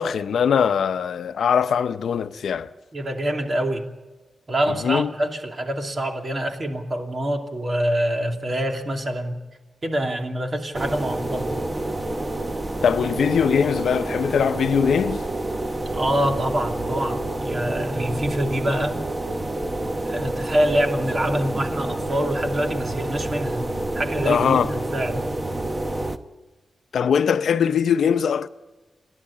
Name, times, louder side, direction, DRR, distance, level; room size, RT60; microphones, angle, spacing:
voice 1, 0.0-2.7 4.8-5.1 12.8-15.2 24.2-24.7 26.9-28.5, left 7 dB, 90° left, 0.6 m, -21 dB
voice 2, 2.9-3.9 4.5-9.4 9.8-11.5 15.9-19.0 20.1-23.7 23.9-25.3, right 1 dB, 45° right, 2.8 m, -25 dB
sound 1, 10.7-26.2, right 1 dB, 25° right, 1.1 m, -28 dB
29.0 x 11.0 x 8.6 m
cardioid pair, 75°, 0 cm